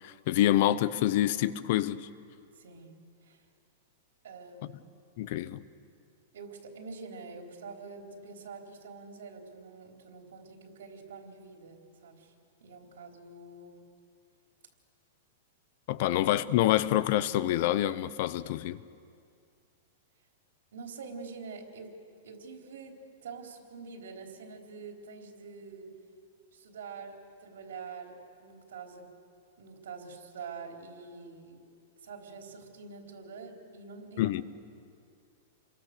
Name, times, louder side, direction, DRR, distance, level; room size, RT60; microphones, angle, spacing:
voice 1, 0.0-2.1 5.2-5.6 15.9-18.8 34.2-34.4, left 13 dB, 45° left, 0.8 m, -27 dB
voice 2, 2.6-3.4 4.2-4.8 6.3-12.3 12.6-13.8 15.9-16.1 20.7-22.0 22.2-25.9 26.5-29.1 29.6-31.6 32.0-34.4, right 4 dB, 90° right, 3.8 m, -46 dB
29.0 x 23.0 x 6.8 m
supercardioid pair, 165°, 0 cm